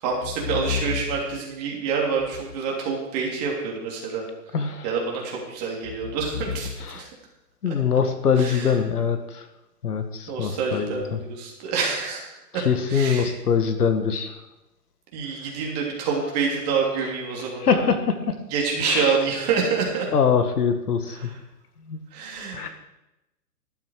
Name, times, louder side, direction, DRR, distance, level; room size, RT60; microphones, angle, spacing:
voice 1, 0.0-4.2 4.8-6.7 7.0-7.1 8.4-8.7 10.3-12.3 12.5-12.6 12.9-13.3 15.1-17.8 18.5-20.1 21.2-21.3 22.1-22.7, right 5 dB, 25° right, -1 dB, 3.1 m, -27 dB
voice 2, 4.5-4.9 6.8-7.1 7.6-9.5 9.8-11.2 12.5-14.4 17.0-17.1 17.6-18.4 18.8-19.2 20.1-21.3 21.9-22.0 22.5-22.7, left 6 dB, 70° left, 8 dB, 1.9 m, -23 dB
14.5 x 12.0 x 4.9 m, 0.94 s
hypercardioid pair, 160°, 48 cm